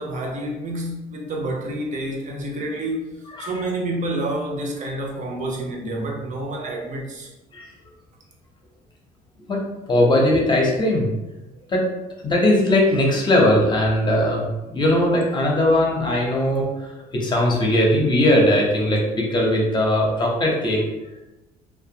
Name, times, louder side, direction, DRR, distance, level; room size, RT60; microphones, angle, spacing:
voice 1, 0.0-7.3, right 1 dB, 45° right, 0 dB, 0.6 m, -28 dB
voice 2, 9.9-11.1 11.7-11.8 12.2-16.7 17.1-20.8, left 1 dB, 25° left, -1 dB, 0.7 m, -19 dB
2.4 x 2.2 x 2.7 m, 1.0 s
cardioid pair, 110°, 17 cm